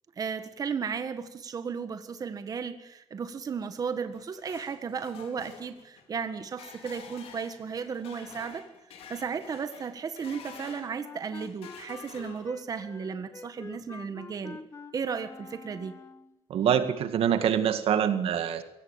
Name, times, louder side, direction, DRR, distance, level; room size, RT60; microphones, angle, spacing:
voice 1, 0.2-8.7 9.1-14.6 14.9-16.0, right 6 dB, 40° right, 9 dB, 1.6 m, -35 dB
sound 1, 3.9-10.9 11.3-12.7, left 6 dB, 90° left, 4.6 m, -49 dB
Wind instrument woodwind instrument, 10.4-16.4, left 4 dB, 30° left, 1.7 m, -46 dB
voice 2, 16.5-18.6, right 9 dB, 70° right, 10 dB, 1.9 m, -25 dB
23.5 x 17.5 x 7.4 m, 0.90 s
cardioid pair, 145°, 10 cm